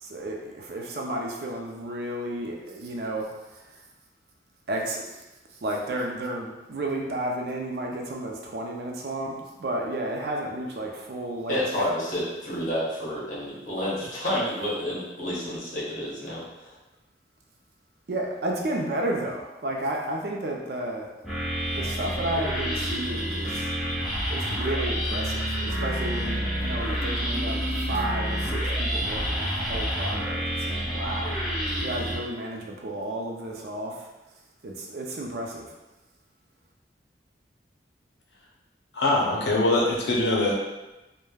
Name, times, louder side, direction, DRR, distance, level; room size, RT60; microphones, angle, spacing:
voice 1, 0.0-3.8 4.7-5.1 5.6-11.7 18.1-21.1 21.7-23.7 24.3-31.4 31.8-34.1 34.6-35.7, right 1 dB, 55° right, 0 dB, 0.4 m, -32 dB
voice 2, 11.5-16.4, equal, 45° left, -7 dB, 0.9 m, -29 dB
sound 1, 21.2-32.2, equal, ahead, 0.6 m, -28 dB
voice 3, 38.9-40.5, left 2 dB, 75° left, -3 dB, 0.6 m, -22 dB
3.2 x 2.1 x 2.2 m, 1.0 s
head